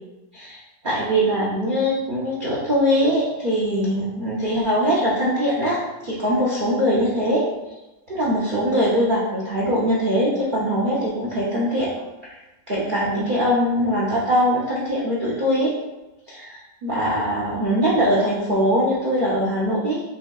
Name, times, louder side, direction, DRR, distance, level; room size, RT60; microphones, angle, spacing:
voice 1, 0.8-7.4 8.1-11.9 12.2-12.4 12.7-15.7 16.3-20.0, equal, 80° right, -6 dB, 0.4 m, -22 dB
5.3 x 2.9 x 2.3 m, 1.0 s
omnidirectional pair, 2.0 m